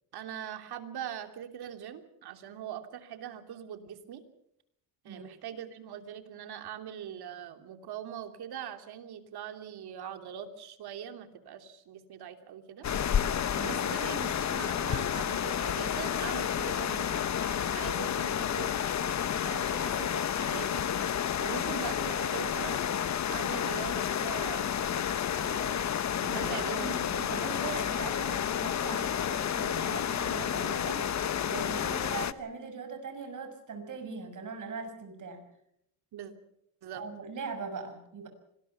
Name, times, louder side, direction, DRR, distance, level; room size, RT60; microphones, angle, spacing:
voice 1, 0.1-4.2 5.0-12.9 13.6-18.9 19.4-20.8 21.4-22.8 23.3-24.7 25.4-25.9 26.3-26.9 36.1-36.3 36.8-37.0, right 9 dB, 70° right, 7 dB, 3.1 m, -42 dB
sound 1, 12.8-32.3, left 9 dB, 45° left, 1.1 m, -30 dB
voice 2, 26.2-35.5 36.9-38.3, right 4 dB, 50° right, 6 dB, 6.4 m, -41 dB
25.5 x 20.5 x 5.9 m, 0.76 s
cardioid pair, 105°, 40 cm